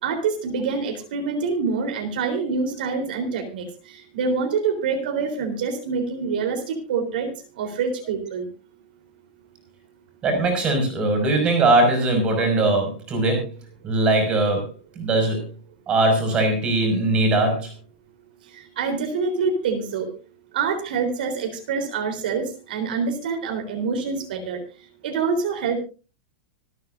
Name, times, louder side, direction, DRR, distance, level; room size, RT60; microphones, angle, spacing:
voice 1, 0.0-7.3 7.6-8.5 18.5-20.1 20.5-24.6 25.0-25.8, right 5 dB, 65° right, 4 dB, 3.8 m, -26 dB
voice 2, 10.2-13.5 13.8-14.7 15.0-15.4 15.9-17.7, right 2 dB, 20° right, 5 dB, 5.4 m, -20 dB
26.0 x 9.4 x 2.6 m, 0.33 s
supercardioid pair, 170°, 5 cm